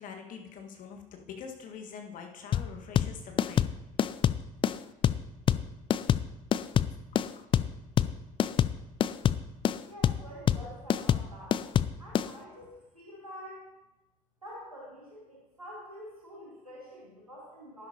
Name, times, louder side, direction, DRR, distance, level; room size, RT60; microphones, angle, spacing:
voice 1, 0.0-3.7 7.1-7.2, left 6 dB, 45° left, 3 dB, 1.6 m, -44 dB
sound 1, 2.5-12.3, left 9 dB, 30° left, 0.4 m, -26 dB
voice 2, 9.9-11.6 12.0-13.7 14.4-17.9, equal, 90° right, -5 dB, 2.0 m, -47 dB
11.5 x 11.0 x 2.8 m, 1.0 s
figure-of-eight pair, 55°, 18 cm